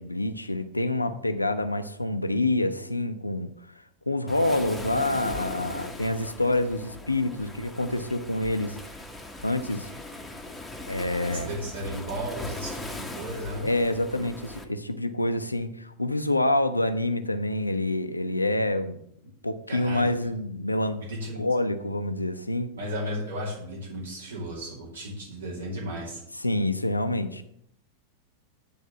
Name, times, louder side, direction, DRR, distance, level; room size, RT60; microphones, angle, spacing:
voice 1, 0.0-3.5 4.1-8.8 9.4-9.9 10.9-11.5 13.6-19.0 19.4-21.0 21.4-22.7 26.4-27.4, left 1 dB, 85° left, 8 dB, 0.6 m, -27 dB
Waves surf, 4.3-14.6, left 1 dB, 5° left, 0.9 m, -39 dB
voice 2, 11.2-13.7 19.7-20.1 20.9-21.4 22.8-26.2, equal, 70° right, -3 dB, 2.4 m, -34 dB
9.5 x 3.6 x 6.9 m, 0.73 s
figure-of-eight pair, 90°, 0 cm